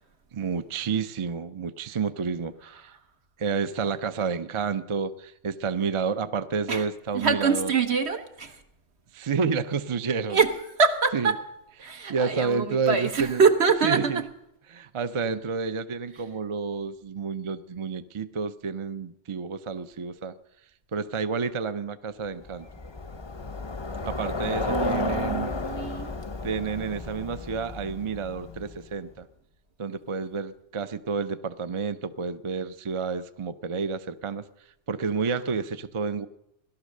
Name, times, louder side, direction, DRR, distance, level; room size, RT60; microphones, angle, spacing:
voice 1, 0.3-2.9 3.4-7.7 9.1-10.4 11.1-11.3 11.8-13.4 13.8-14.2 14.7-20.3 20.9-22.7 24.0-25.5 26.4-29.3 29.8-34.5 34.9-36.3, right 5 dB, 35° right, 11 dB, 0.5 m, -30 dB
voice 2, 7.1-8.6 10.3-10.5 10.8-11.4 11.8-14.3 24.6-26.1, right 5 dB, 70° right, 6 dB, 1.5 m, -24 dB
Bicycle, 22.4-28.9, left 3 dB, 30° left, 0.7 m, -33 dB
17.5 x 12.0 x 6.6 m, 0.80 s
omnidirectional pair, 1.2 m